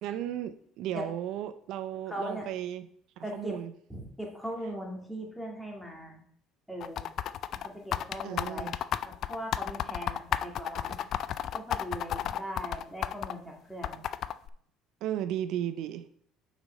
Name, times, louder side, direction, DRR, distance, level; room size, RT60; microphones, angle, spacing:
voice 1, 0.0-2.9 3.2-3.7 8.2-8.8 15.0-16.1, right 11 dB, 70° right, 11 dB, 0.4 m, -35 dB
voice 2, 2.1-2.5 3.2-3.5 3.9-6.2 6.7-7.0 7.5-11.0 11.5-14.0, right 1 dB, 5° left, -1 dB, 1.9 m, -40 dB
sound 1, 6.8-13.3 13.8-14.5, left 10 dB, 55° left, 0.3 m, -32 dB
5.9 x 5.6 x 4.2 m, 0.63 s
cardioid pair, 115°, 0 cm